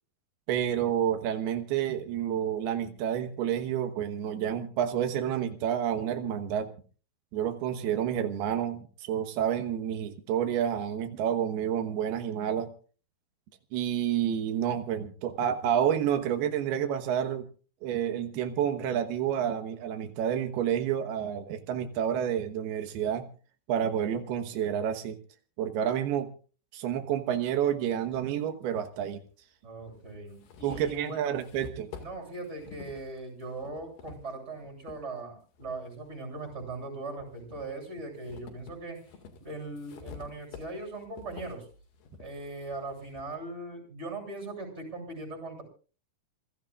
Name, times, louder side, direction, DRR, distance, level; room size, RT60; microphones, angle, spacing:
voice 1, 0.5-6.7 7.3-12.7 13.7-17.5 17.8-23.3 23.7-25.2 25.6-26.3 26.7-29.2 30.6-31.9, right 9 dB, 90° right, 7 dB, 3.2 m, -29 dB
sound 1, 28.1-28.2 29.3-29.4 29.9-35.0 35.5-36.7 37.2-43.3, left 5 dB, 85° left, 4.1 m, -49 dB
voice 2, 29.6-31.4 32.0-39.1 39.4-41.7 42.2-45.6, right 2 dB, 15° right, 3 dB, 8.3 m, -40 dB
27.0 x 17.0 x 2.5 m, 0.39 s
omnidirectional pair, 4.4 m